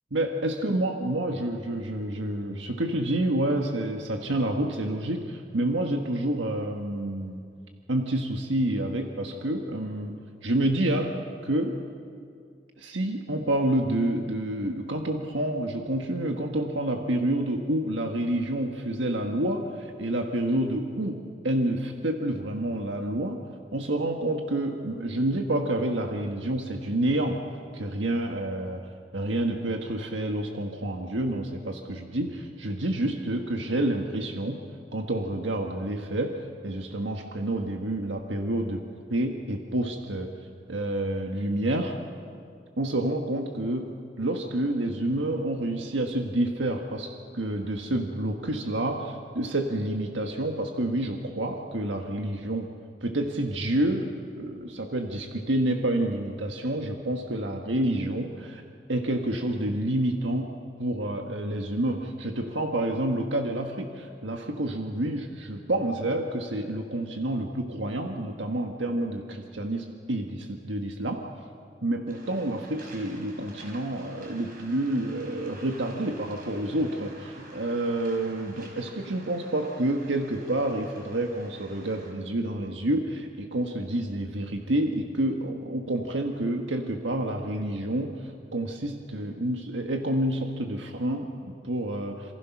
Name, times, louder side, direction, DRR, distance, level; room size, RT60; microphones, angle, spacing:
voice 1, 0.1-7.4 7.9-11.2 11.4-11.8 12.8-23.4 23.7-27.4 27.7-34.6 34.9-38.8 39.1-40.3 40.7-42.0 42.8-52.7 53.0-54.1 54.4-58.6 58.9-71.2 71.8-92.3, right 1 dB, 80° right, 3 dB, 1.6 m, -28 dB
Waves surf, 72.1-82.1, right 2 dB, 45° right, 4.9 m, -49 dB
27.5 x 26.0 x 6.1 m, 2.3 s
head